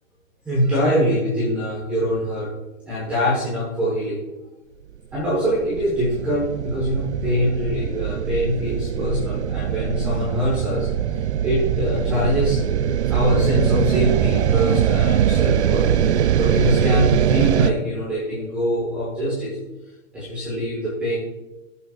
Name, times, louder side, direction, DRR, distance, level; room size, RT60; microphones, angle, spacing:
voice 1, 0.4-2.5 2.9-4.2 5.1-10.9 11.1-12.6 13.1-15.9 16.1-19.6 20.1-21.1, equal, 5° right, -9 dB, 1.2 m, -23 dB
sound 1, 5.1-17.7, right 9 dB, 55° right, 0.4 m, -22 dB
15.5 x 6.9 x 2.4 m, 1.0 s
hypercardioid pair, 180°, 41 cm